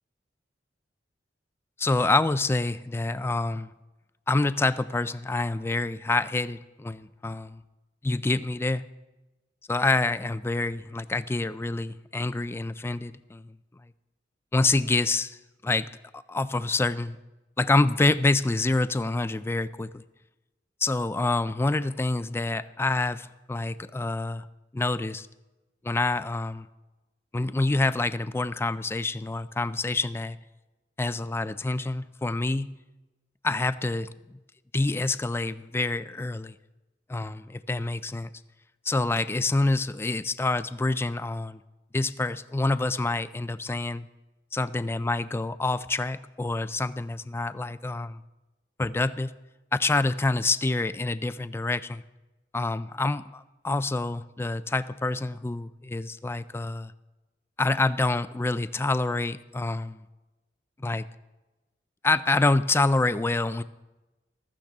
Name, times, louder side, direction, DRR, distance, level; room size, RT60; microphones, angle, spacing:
voice 1, 1.8-3.7 4.3-7.6 8.0-8.8 9.7-13.5 14.5-15.4 15.6-15.9 16.1-17.2 17.6-20.0 20.8-24.5 24.7-25.3 25.8-26.7 27.3-30.4 31.0-32.7 33.4-34.1 34.7-36.6 37.1-38.3 38.9-41.6 41.9-44.1 44.5-48.2 48.8-49.3 49.7-52.0 52.5-56.9 57.6-60.0 60.8-61.1 62.0-63.6, left 2 dB, 15° left, 15 dB, 0.3 m, -27 dB
15.0 x 13.0 x 3.6 m, 1.1 s
head